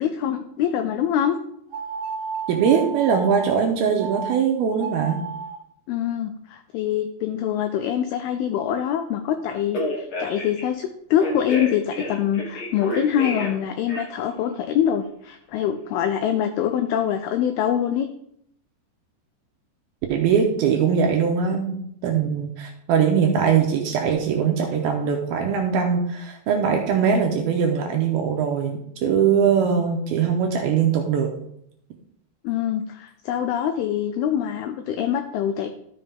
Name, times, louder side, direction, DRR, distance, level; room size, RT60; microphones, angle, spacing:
voice 1, 0.0-1.4 5.9-18.1 32.4-35.7, left 9 dB, 90° left, 8 dB, 2.2 m, -24 dB
sound 1, 1.7-3.5 4.0-4.4 4.7-5.6, right 5 dB, 60° right, 2.6 m, -32 dB
voice 2, 2.5-5.2 20.1-31.3, right 7 dB, 80° right, 3 dB, 2.3 m, -21 dB
Telephone, 9.5-10.6 11.2-13.6 13.9-14.3, left 1 dB, 70° left, 1.2 m, -30 dB
13.0 x 5.6 x 3.5 m, 0.73 s
omnidirectional pair, 5.1 m